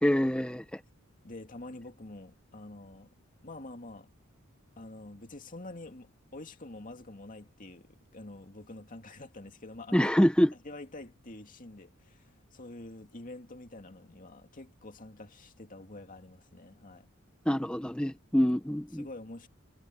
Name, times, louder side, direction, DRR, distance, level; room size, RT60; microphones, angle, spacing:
voice 1, 0.0-0.8 9.9-10.5 17.5-19.1, equal, 5° left, 0.9 m, -26 dB
voice 2, 1.2-3.1 3.4-4.1 4.8-10.1 10.6-17.1 18.9-19.5, left 2 dB, 40° left, 2.3 m, -47 dB
head